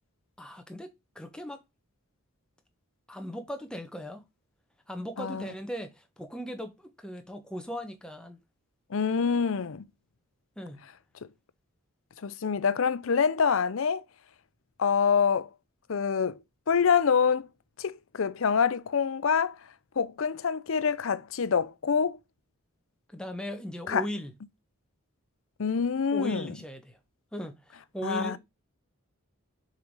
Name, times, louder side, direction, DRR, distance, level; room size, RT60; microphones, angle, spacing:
voice 1, 0.4-1.6 3.1-4.2 4.9-8.4 10.6-10.8 23.1-24.3 26.1-27.0 27.3-28.4, equal, 5° left, 0.9 m, -38 dB
voice 2, 8.9-9.8 11.2-11.3 12.2-14.0 14.8-15.5 15.9-16.4 16.7-17.5 17.8-19.6 20.0-22.2 23.9-24.0 25.6-26.5 28.0-28.4, left 6 dB, 65° left, 0.5 m, -26 dB
6.7 x 3.9 x 4.7 m
head